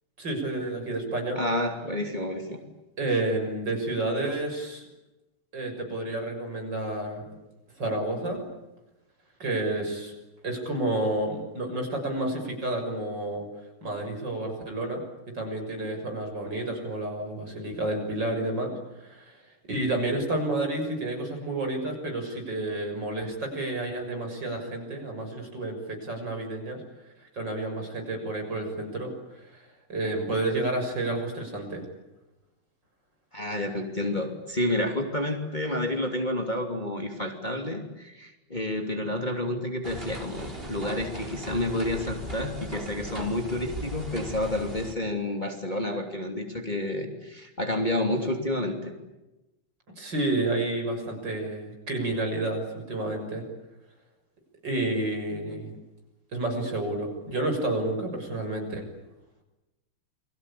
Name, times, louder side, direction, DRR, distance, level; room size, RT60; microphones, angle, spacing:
voice 1, 0.2-1.4 3.0-4.9 5.5-7.2 7.8-8.4 9.4-10.1 10.4-13.5 13.8-15.0 15.3-18.7 19.0-19.4 19.7-26.8 27.3-29.1 29.4-29.6 29.9-31.8 50.0-53.4 54.6-55.8 56.3-58.8, right 2 dB, 55° right, 4 dB, 7.3 m, -30 dB
voice 2, 1.3-2.6 33.3-48.9 55.3-55.5, left 1 dB, 20° left, 3 dB, 3.1 m, -30 dB
sound 1, 39.8-44.9, equal, 25° right, 4.6 m, -38 dB
29.5 x 23.0 x 8.6 m, 0.99 s
omnidirectional pair, 2.4 m